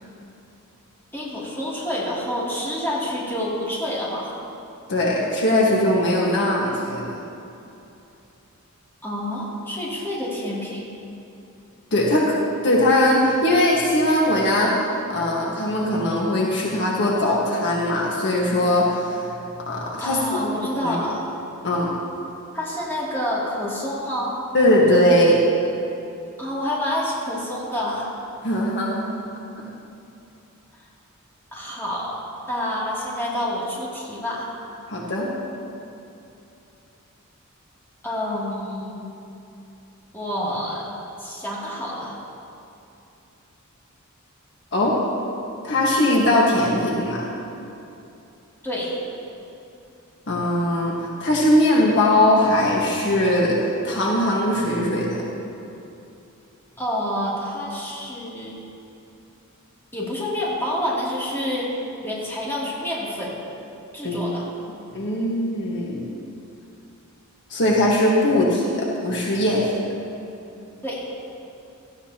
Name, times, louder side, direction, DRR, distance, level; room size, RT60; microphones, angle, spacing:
voice 1, 1.1-4.3 9.0-10.8 20.0-21.3 22.5-24.3 26.4-28.1 31.5-32.1 32.5-34.5 38.0-39.1 40.1-40.9 41.2-42.2 48.6-49.0 56.8-58.6 59.9-61.7 62.0-63.4 63.9-64.5 70.8-71.0, left 1 dB, 10° left, -7 dB, 2.8 m, -28 dB
voice 2, 4.9-7.1 11.9-12.3 12.6-14.7 15.1-20.2 20.8-21.0 21.6-21.9 24.5-25.4 28.4-29.1 34.9-35.3 44.7-44.9 45.6-47.2 50.3-55.2 64.0-64.3 64.9-66.0 67.5-69.7, left 1 dB, 55° left, -4 dB, 1.6 m, -20 dB
17.0 x 14.0 x 3.0 m, 2.8 s
head